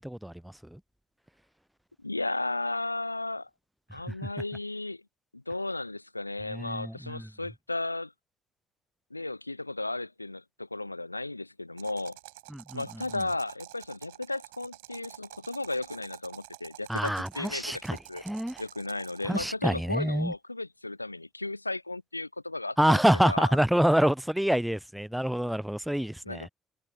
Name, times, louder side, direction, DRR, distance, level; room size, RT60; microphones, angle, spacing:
voice 1, 0.0-0.8 4.1-4.2 6.5-7.3 12.5-12.8 13.1-13.2 16.9-18.0 18.2-18.6 19.2-20.3 22.8-26.5, equal, 5° right, 0.6 m, -27 dB
voice 2, 2.0-3.5 3.9-5.0 5.3-8.1 9.1-12.2 12.7-18.2 18.6-23.5 26.2-26.5, left 2 dB, 90° left, 0.3 m, -35 dB
sound 1, 11.8-19.4, right 23 dB, 70° right, 6.9 m, -49 dB
figure-of-eight pair, 45°, 0 cm